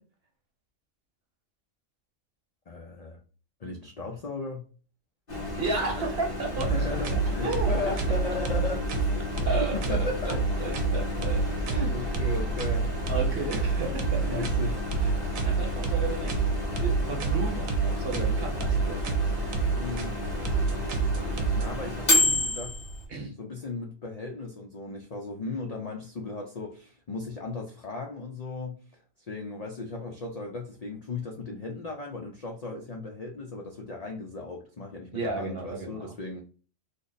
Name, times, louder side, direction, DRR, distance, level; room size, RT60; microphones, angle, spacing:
voice 1, 2.7-3.2 3.6-4.6 6.6-9.3 9.7-10.4 11.9-12.9 14.3-14.8 19.8-20.2 21.5-22.8 23.4-36.4, left 3 dB, 65° left, 0.4 m, -36 dB
Microwave oven, 5.3-23.1, left 1 dB, 35° left, 1.3 m, -32 dB
voice 2, 5.6-6.7 7.1-7.7 9.4-10.0 10.2-11.9 13.1-14.5 15.0-15.1 15.4-16.3 16.8-19.3 23.1-23.3 35.1-36.0, right 3 dB, 55° right, 1.1 m, -33 dB
sound 1, 6.5-21.7, right 3 dB, 90° right, 1.1 m, -28 dB
3.3 x 2.0 x 3.9 m
omnidirectional pair, 1.3 m